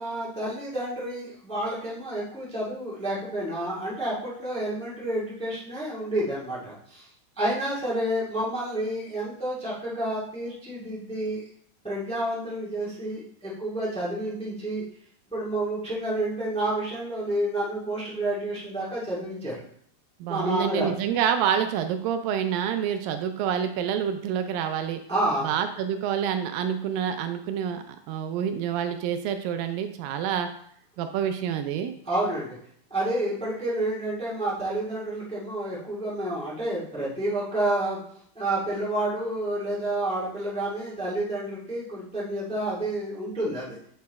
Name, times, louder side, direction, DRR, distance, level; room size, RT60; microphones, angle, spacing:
voice 1, 0.0-7.1 7.4-11.4 11.8-14.8 15.3-19.6 20.3-20.9 25.1-25.5 32.0-32.6 32.9-38.0 38.3-43.8, right 1 dB, 5° left, -7 dB, 0.9 m, -29 dB
voice 2, 20.2-25.0 25.4-30.5 31.0-31.9, right 8 dB, 80° right, 8 dB, 2.1 m, -27 dB
7.7 x 4.3 x 4.1 m, 0.65 s
omnidirectional pair, 4.4 m